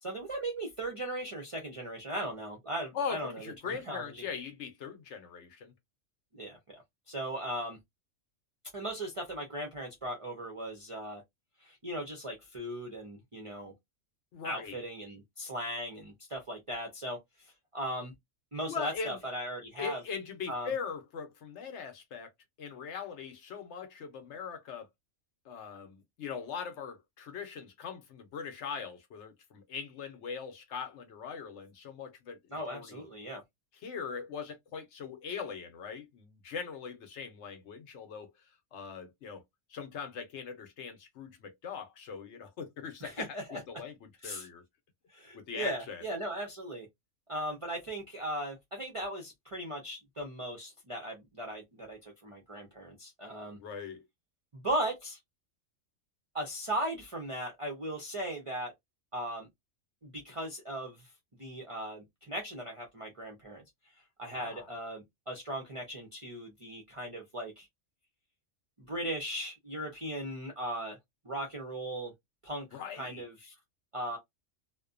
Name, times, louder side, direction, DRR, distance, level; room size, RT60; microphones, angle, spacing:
voice 1, 0.0-4.2 6.3-7.8 8.7-11.2 11.6-13.7 14.4-17.2 17.7-18.1 18.5-20.0 20.5-20.7 32.5-33.4 43.0-43.6 44.2-44.5 45.1-46.9 47.3-53.6 54.5-55.2 56.3-58.7 59.1-59.5 60.0-61.1 61.4-63.6 64.2-67.7 68.8-71.0 71.2-72.1 72.4-73.5 73.9-74.2, right 1 dB, 45° right, 0.4 m, -38 dB
voice 2, 2.9-5.7 14.3-14.8 18.7-19.2 19.8-22.3 22.6-24.9 25.5-33.0 33.8-38.3 38.7-39.4 39.7-44.6 45.3-46.0 53.6-54.0 64.3-64.7 72.7-73.2, left 6 dB, 65° left, 0.9 m, -41 dB
2.5 x 2.1 x 2.4 m
omnidirectional pair, 1.4 m